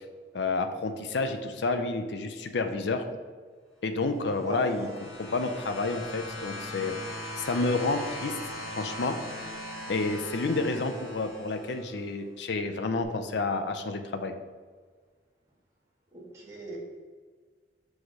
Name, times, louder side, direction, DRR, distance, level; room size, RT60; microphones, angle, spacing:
voice 1, 0.3-3.0 3.8-7.0 7.4-8.4 8.7-9.2 9.9-14.3, left 3 dB, 80° left, 7 dB, 0.5 m, -30 dB
sound 1, 4.2-12.0 13.0-13.1, left 1 dB, 5° left, 1.9 m, -40 dB
voice 2, 4.4-4.9 16.1-16.8, right 2 dB, 15° right, -7 dB, 1.7 m, -39 dB
6.1 x 4.9 x 4.1 m, 1.5 s
head